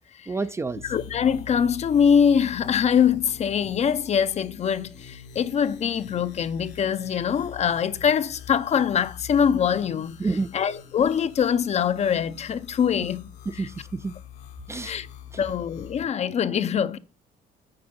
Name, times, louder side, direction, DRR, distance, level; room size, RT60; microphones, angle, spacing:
voice 1, 0.3-0.9 10.2-10.5 13.5-14.1 14.7-15.0 15.3-15.4, right 3 dB, 15° right, 0.4 m, -29 dB
sound 1, 0.6-16.0, left 8 dB, 80° left, 1.6 m, -44 dB
voice 2, 0.9-10.2 10.5-13.3 14.8-15.1 15.4-17.0, left 7 dB, 40° left, 0.6 m, -23 dB
8.8 x 4.8 x 5.2 m
cardioid pair, 110°, 17 cm